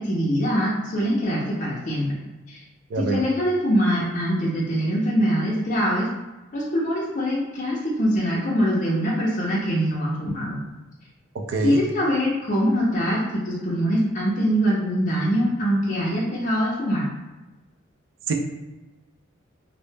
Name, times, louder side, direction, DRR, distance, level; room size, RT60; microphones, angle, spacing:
voice 1, 0.0-2.2 2.5-2.6 3.0-6.1 6.5-10.6 11.6-17.1, equal, 40° left, -5 dB, 0.4 m, -23 dB
voice 2, 2.9-3.2 11.3-11.8 18.3-18.4, right 3 dB, 70° right, 3 dB, 0.3 m, -25 dB
2.1 x 2.0 x 3.2 m, 1.1 s
head